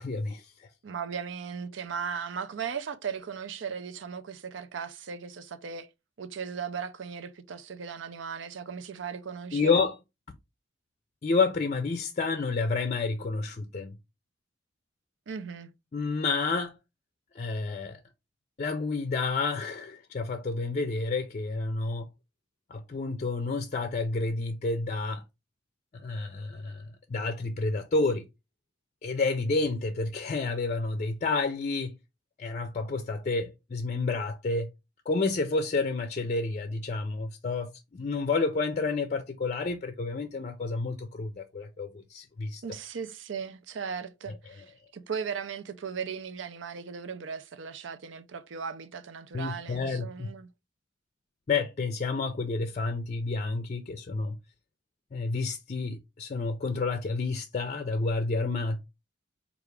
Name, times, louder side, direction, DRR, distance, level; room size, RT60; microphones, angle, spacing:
voice 1, 0.0-0.7 9.5-10.0 11.2-13.9 15.9-16.7 17.3-18.0 18.6-22.1 22.7-25.2 25.9-28.2 29.0-32.0 32.4-34.7 35.1-42.6 44.3-44.4 49.3-50.3 51.5-54.4 55.1-58.8, left 3 dB, 40° left, 0.4 m, -30 dB
voice 2, 0.8-5.9 6.2-9.8 15.3-15.7 42.6-44.7 44.9-50.5, right 6 dB, 85° right, 0.5 m, -37 dB
4.7 x 2.5 x 3.2 m
head